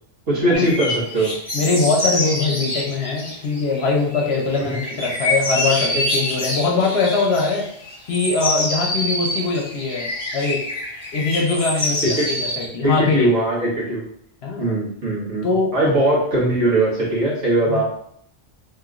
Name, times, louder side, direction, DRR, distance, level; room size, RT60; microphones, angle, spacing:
voice 1, 0.3-1.3 4.6-4.8 12.0-12.3 12.8-14.0 14.6-15.5 15.7-17.8, right 1 dB, 70° right, -6 dB, 1.6 m, -20 dB
sound 1, 0.5-12.7, left 1 dB, 25° left, 0.9 m, -26 dB
voice 2, 1.5-7.7 8.1-10.6 11.1-13.3 14.4-14.8 15.4-15.7 17.7-17.8, left 3 dB, 60° left, -1 dB, 0.9 m, -22 dB
3.1 x 2.9 x 2.4 m, 0.67 s
omnidirectional pair, 1.3 m